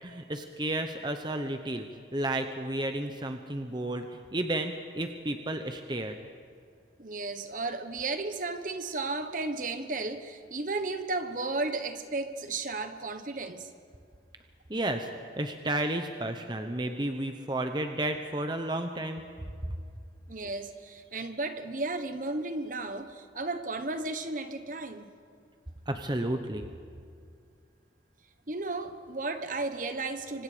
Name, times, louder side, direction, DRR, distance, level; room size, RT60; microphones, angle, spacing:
voice 1, 0.0-1.9 2.1-4.1 4.3-6.2 14.7-15.1 15.4-19.2 25.9-26.7, right 1 dB, 25° right, 6 dB, 1.0 m, -32 dB
voice 2, 7.0-13.7 20.3-25.1 28.5-30.4, right 3 dB, 45° right, 9 dB, 1.2 m, -34 dB
26.5 x 25.0 x 5.1 m, 2.3 s
head